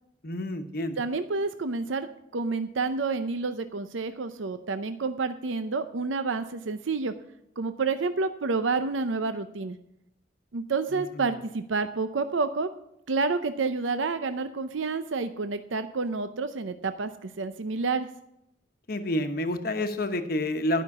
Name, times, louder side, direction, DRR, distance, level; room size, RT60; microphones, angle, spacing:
voice 1, 0.2-1.0 10.9-11.3 18.9-20.8, left 1 dB, 50° left, 7 dB, 1.0 m, -29 dB
voice 2, 1.0-7.1 7.6-9.8 10.5-12.7 13.1-18.1, right 4 dB, 90° right, 10 dB, 0.7 m, -29 dB
12.0 x 5.9 x 7.1 m, 0.81 s
head